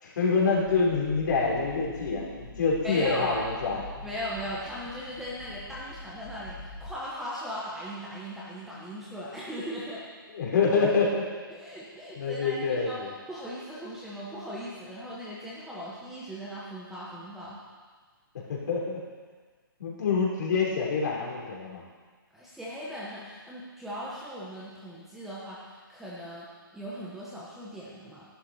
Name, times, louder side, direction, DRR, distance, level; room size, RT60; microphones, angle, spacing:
voice 1, 0.0-4.1 10.3-11.2 12.1-13.1 18.5-19.0 19.8-21.8, left 4 dB, 50° left, -3 dB, 3.4 m, -26 dB
sound 1, 0.6-6.9, left 2 dB, 25° left, 1.3 m, -45 dB
voice 2, 2.8-3.4 4.0-10.0 11.5-13.0 13.3-17.6 22.3-26.5 26.7-28.2, equal, 5° right, -8 dB, 1.0 m, -38 dB
11.5 x 11.0 x 4.2 m, 1.5 s
hypercardioid pair, 170°, 12 cm